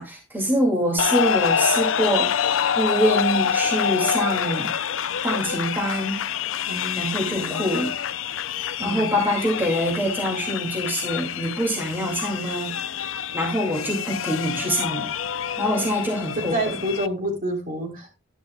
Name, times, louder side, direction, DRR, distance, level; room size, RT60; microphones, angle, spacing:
voice 1, 0.0-4.7 5.2-6.2 7.0-7.9 8.8-12.7 13.3-15.1 15.6-16.7, equal, 10° right, 2.3 m, -25 dB
sound 1, 1.0-17.1, left 8 dB, 85° left, 0.5 m, -26 dB
voice 2, 6.7-7.6 8.8-9.2 13.7-13.9 16.5-18.1, right 1 dB, 45° right, 3.6 m, -29 dB
11.0 x 10.5 x 2.3 m
head